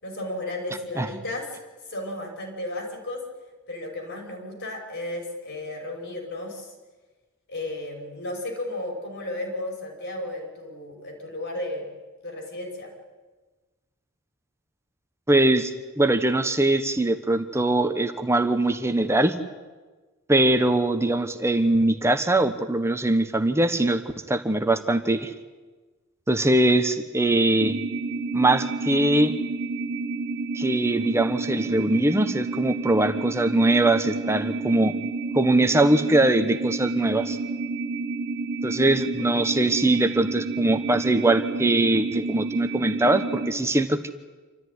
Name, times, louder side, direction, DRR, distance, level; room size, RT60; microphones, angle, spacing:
voice 1, 0.0-1.6 1.9-3.3 3.7-6.7 7.5-11.9 12.2-12.9, left 1 dB, 55° left, 1 dB, 5.6 m, -34 dB
voice 2, 15.3-19.3 20.3-24.0 24.3-25.3 26.3-27.8 28.3-29.3 30.5-34.9 35.3-37.4 38.6-44.1, right 2 dB, 10° right, 8 dB, 1.2 m, -22 dB
sound 1, 27.6-43.5, right 3 dB, 55° right, 1.6 m, -30 dB
27.5 x 14.0 x 9.8 m, 1.3 s
head